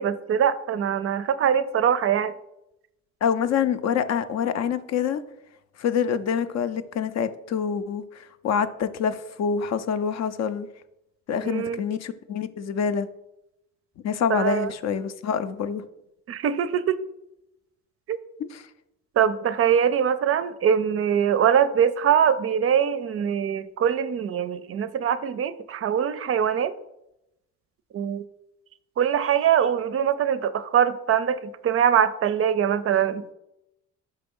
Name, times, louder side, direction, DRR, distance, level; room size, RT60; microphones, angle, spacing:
voice 1, 0.0-2.3 11.4-11.8 14.3-14.7 16.3-17.0 18.1-18.2 19.2-26.7 27.9-28.2 29.0-33.2, right 8 dB, 50° right, 13 dB, 0.4 m, -23 dB
voice 2, 3.2-5.2 5.8-10.7 11.3-13.1 14.0-15.8 18.4-18.6, left 7 dB, 60° left, 12 dB, 0.5 m, -26 dB
5.5 x 3.4 x 5.3 m, 0.87 s
cardioid pair, 90°, 30 cm